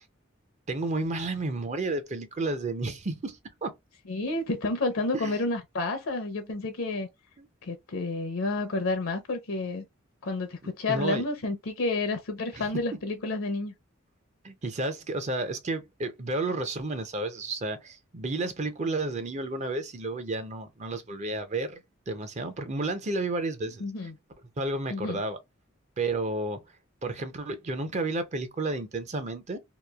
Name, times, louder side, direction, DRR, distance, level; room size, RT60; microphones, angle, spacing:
voice 1, 0.7-3.8 5.1-5.4 7.4-7.5 10.6-11.2 12.5-12.7 14.4-24.1 24.6-25.4 26.0-26.6 27.0-29.6, right 2 dB, 35° right, 0.5 m, -32 dB
voice 2, 4.1-7.1 7.6-9.8 10.2-13.7 23.8-24.1 24.9-25.2, left 2 dB, 75° left, 0.6 m, -30 dB
2.9 x 2.3 x 2.3 m
head